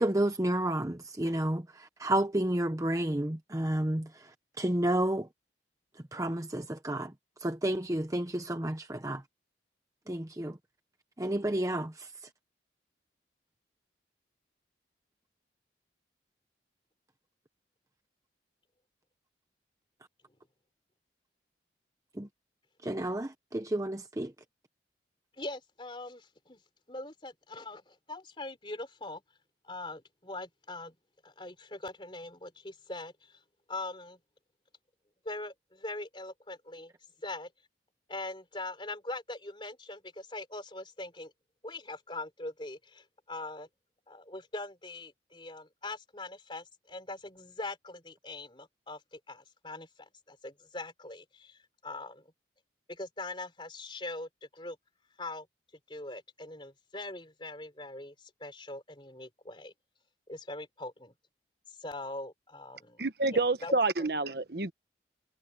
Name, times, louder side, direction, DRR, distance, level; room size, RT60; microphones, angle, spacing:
voice 1, 0.0-5.3 6.1-7.1 7.4-9.2 10.1-10.6 11.2-12.1 22.1-22.3 22.8-24.3, right 1 dB, 20° right, 0.8 m, -31 dB
voice 2, 25.4-26.6 26.9-29.2 29.6-31.0 31.2-33.4 33.7-34.2 35.3-36.9 37.2-37.5 38.1-41.3 41.6-43.7 44.1-52.3 52.9-54.8 55.2-55.5 55.9-59.7 60.3-61.1 61.8-63.0 63.6-63.8, left 2 dB, 30° left, 3.6 m, -42 dB
voice 3, 63.0-64.7, right 3 dB, 60° right, 1.2 m, -28 dB
head